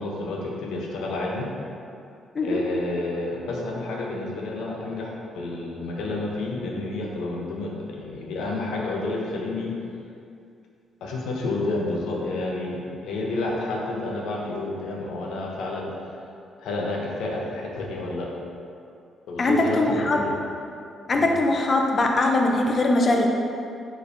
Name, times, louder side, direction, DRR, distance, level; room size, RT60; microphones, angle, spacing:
voice 1, 0.0-1.5 2.4-9.7 11.0-15.9 16.6-18.3 19.3-20.3 21.1-21.3, left 2 dB, 80° left, -2 dB, 0.6 m, -30 dB
voice 2, 19.4-20.2 21.1-23.3, left 2 dB, 40° left, 2 dB, 0.5 m, -21 dB
4.8 x 3.2 x 2.6 m, 2.5 s
cardioid pair, 90°, 0 cm